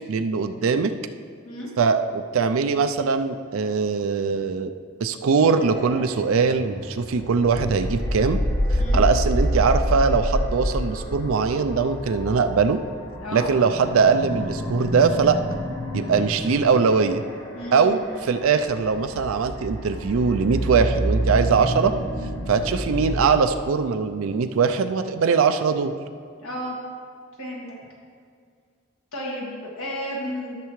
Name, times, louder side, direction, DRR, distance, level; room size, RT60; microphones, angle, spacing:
voice 1, 0.1-0.9 1.8-4.7 5.0-8.4 8.7-12.8 13.3-15.4 15.9-17.2 17.7-21.9 22.5-25.9, right 5 dB, 70° right, 8 dB, 0.4 m, -21 dB
sound 1, 5.6-23.4, equal, 60° left, 1.7 m, -28 dB
voice 2, 17.5-18.2 26.4-26.8 27.4-27.7 29.1-30.6, equal, 80° left, -4 dB, 1.7 m, -33 dB
13.5 x 6.7 x 3.1 m, 2.2 s
head